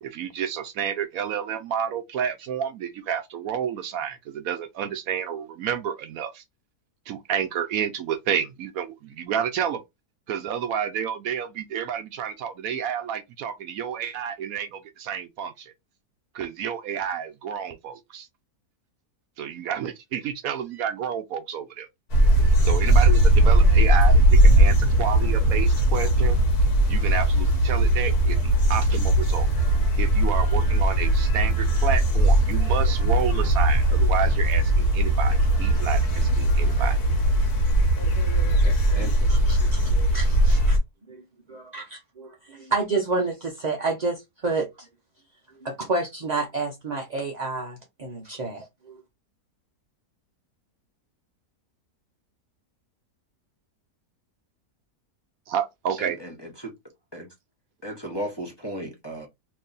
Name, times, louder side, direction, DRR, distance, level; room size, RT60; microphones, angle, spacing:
voice 1, 0.0-6.4 7.1-9.8 10.3-15.7 16.3-18.3 19.4-21.9 22.6-26.4 26.9-29.5 30.0-37.0 55.5-56.2, right 8 dB, 70° right, 0.9 m, -30 dB
sound 1, 22.1-40.8, right 1 dB, 70° left, 1.6 m, -19 dB
voice 2, 38.8-40.8 41.1-41.2 41.5-44.9 45.5-49.0, right 3 dB, 45° right, 0.5 m, -30 dB
voice 3, 56.0-56.7 57.1-57.3 57.8-59.3, equal, 20° left, 0.8 m, -35 dB
3.0 x 2.7 x 3.8 m
omnidirectional pair, 1.7 m